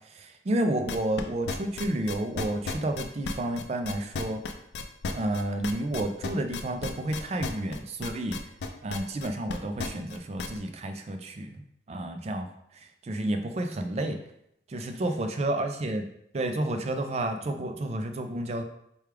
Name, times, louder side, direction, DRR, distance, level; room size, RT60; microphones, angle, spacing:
voice 1, 0.1-4.4 5.1-8.4 8.8-12.5 13.0-14.2 14.7-16.1 16.3-18.6, right 1 dB, 35° right, 6 dB, 0.4 m, -30 dB
sound 1, 0.9-10.6, left 4 dB, 70° left, 0.4 m, -34 dB
4.5 x 2.3 x 3.3 m, 0.74 s
head